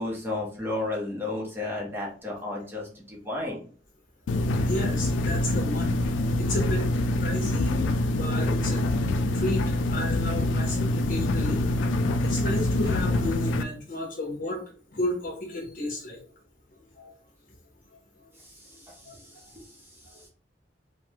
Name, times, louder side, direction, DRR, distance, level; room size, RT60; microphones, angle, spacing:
voice 1, 0.0-3.6 18.4-19.7 20.1-20.2, left 2 dB, 10° right, -3 dB, 0.7 m, -33 dB
sound 1, 4.3-13.6, left 1 dB, 85° left, 0.3 m, -25 dB
voice 2, 4.5-6.0 6.4-8.9 9.3-11.6 12.2-14.6 14.9-16.2 16.9-17.2 18.7-19.2, left 1 dB, 50° left, 1 dB, 0.9 m, -33 dB
3.2 x 2.1 x 2.9 m, 0.41 s
head